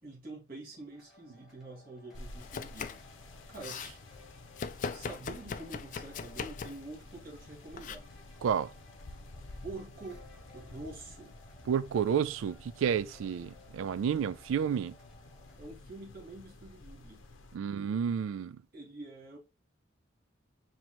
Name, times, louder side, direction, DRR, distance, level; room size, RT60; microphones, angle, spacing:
voice 1, 0.0-3.0 3.5-3.8 4.9-8.1 9.6-10.3 10.5-11.4 15.6-17.2 18.7-19.4, right 2 dB, 50° right, 1.9 m, -46 dB
sound 1, 0.9-15.6, left 2 dB, ahead, 1.5 m, -59 dB
sound 2, 2.1-17.6, left 2 dB, 80° left, 0.7 m, -52 dB
Domestic sounds home sounds, 2.4-3.1 3.4-3.9 4.6-6.9 7.8-8.0, left 5 dB, 40° left, 0.3 m, -40 dB
voice 2, 11.7-14.9 17.5-18.6, right 7 dB, 85° right, 0.3 m, -30 dB
4.4 x 2.9 x 2.8 m
head